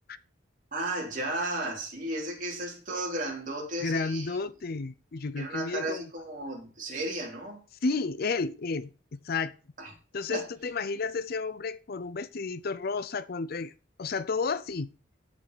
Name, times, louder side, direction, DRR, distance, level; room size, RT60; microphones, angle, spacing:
voice 1, 0.7-4.4 5.4-7.6 9.8-9.9 10.3-10.4, right 2 dB, 40° right, 4.0 m, -34 dB
voice 2, 3.8-6.1 7.8-9.5 10.1-13.7 14.0-14.9, left 4 dB, 50° left, 0.5 m, -32 dB
14.0 x 5.3 x 5.1 m
head